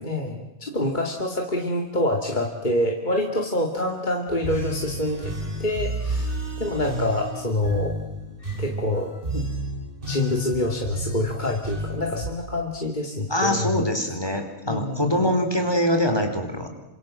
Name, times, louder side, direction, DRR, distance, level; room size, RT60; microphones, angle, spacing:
voice 1, 0.0-5.3 5.6-8.0 8.6-9.4 10.0-13.9 14.6-15.2, left 1 dB, 35° left, 1 dB, 2.6 m, -26 dB
sound 1, 4.3-12.3, right 1 dB, 40° right, 5.0 m, -31 dB
voice 2, 13.3-16.7, left 1 dB, 20° left, 4 dB, 4.3 m, -23 dB
28.0 x 26.0 x 7.7 m, 0.92 s
omnidirectional pair, 1.4 m